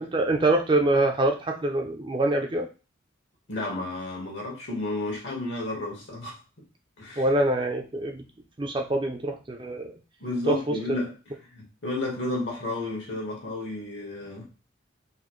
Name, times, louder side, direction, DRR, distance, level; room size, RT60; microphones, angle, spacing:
voice 1, 0.0-2.7 7.2-8.2 8.6-9.9 10.5-10.8, right 2 dB, 25° right, 3 dB, 0.4 m, -25 dB
voice 2, 3.5-6.4 7.0-7.3 10.2-11.1 11.5-14.5, left 2 dB, 70° left, -2 dB, 1.5 m, -32 dB
4.1 x 2.6 x 3.1 m, 0.33 s
head